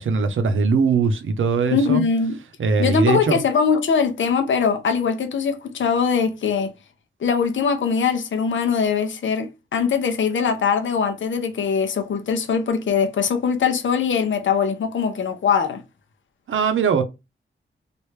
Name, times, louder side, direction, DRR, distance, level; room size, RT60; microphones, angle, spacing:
voice 1, 0.0-2.0 2.6-3.4 16.5-17.0, right 5 dB, 85° right, 0.6 m, -20 dB
voice 2, 1.7-2.3 2.8-6.7 7.2-15.8, left 6 dB, 70° left, 0.6 m, -21 dB
3.1 x 2.5 x 3.2 m
wide cardioid pair, 110°, 20 cm